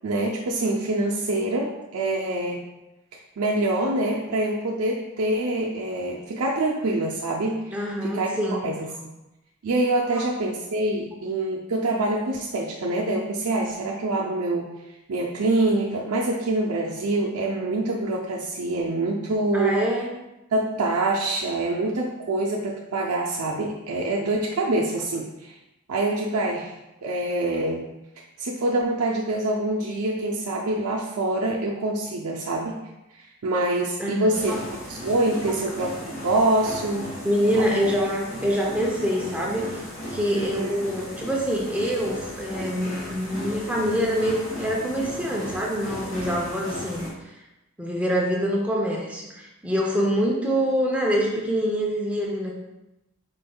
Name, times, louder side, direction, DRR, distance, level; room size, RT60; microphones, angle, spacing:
voice 1, 0.0-2.6 3.4-7.7 8.0-8.3 8.6-8.9 9.6-14.7 15.1-19.8 20.5-25.5 25.9-26.7 27.0-27.8 28.4-32.8 33.2-34.5 34.9-37.1 37.6-37.7 40.3-40.8, right 2 dB, 90° right, -2 dB, 0.5 m, -25 dB
voice 2, 7.7-8.7 10.1-10.2 19.5-20.1 34.0-34.6 37.2-47.3 47.8-52.6, equal, 5° right, -2 dB, 0.6 m, -25 dB
Bathroom gym, 34.3-47.1, equal, 40° left, 1.5 m, -36 dB
5.1 x 4.4 x 2.3 m, 0.97 s
head